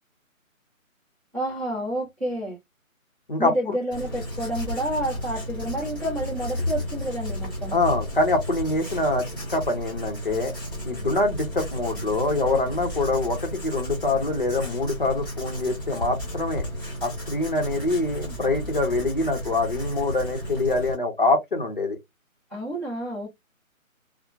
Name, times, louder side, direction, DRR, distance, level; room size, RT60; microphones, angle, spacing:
voice 1, 1.3-2.6 3.4-7.8 22.5-23.3, right 1 dB, 10° right, 0.8 m, -29 dB
voice 2, 3.3-3.7 7.7-10.5 10.8-16.6 17.0-22.0, left 2 dB, 40° left, 0.7 m, -25 dB
Writing, 3.9-21.0, equal, 15° left, 1.1 m, -33 dB
2.8 x 2.1 x 2.3 m
hypercardioid pair, 170°, 42 cm